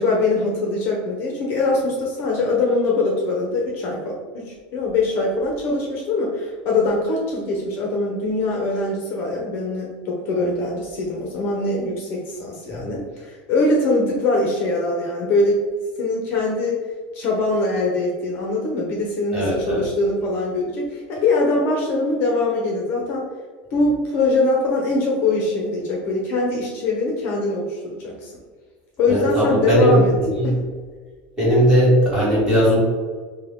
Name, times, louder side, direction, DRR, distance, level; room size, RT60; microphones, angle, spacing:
voice 1, 0.0-15.6 16.0-16.8 17.1-23.3 23.7-28.3 29.0-30.1 30.4-30.6, left 2 dB, 40° left, -1 dB, 0.6 m, -22 dB
voice 2, 19.3-19.8 29.1-30.5 31.4-32.8, equal, 15° right, -8 dB, 1.5 m, -18 dB
5.5 x 2.2 x 3.5 m, 1.5 s
cardioid pair, 175°, 6 cm